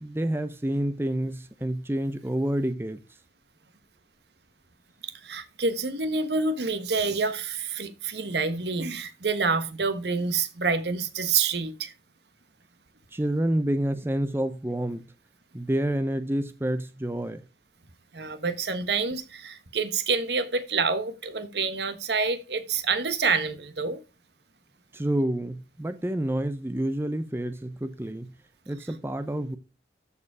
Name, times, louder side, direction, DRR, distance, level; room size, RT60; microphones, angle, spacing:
voice 1, 0.0-3.0 13.1-15.0 15.5-17.4 24.9-28.3 28.7-29.6, right 1 dB, 15° right, 0.5 m, -28 dB
voice 2, 5.0-11.9 18.1-24.0 28.8-29.0, right 4 dB, 75° right, 1.2 m, -27 dB
13.5 x 4.9 x 4.8 m
head